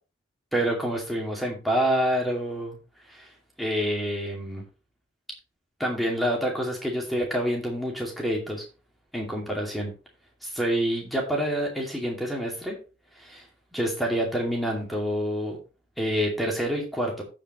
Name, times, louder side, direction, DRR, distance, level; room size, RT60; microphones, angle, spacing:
voice 1, 0.5-2.8 3.1-3.3 3.6-4.6 5.8-8.6 9.1-9.9 10.4-12.8 13.2-13.4 13.7-15.6 16.0-17.2, equal, ahead, -1 dB, 2.4 m, -27 dB
15.5 x 5.2 x 3.1 m, 0.33 s
head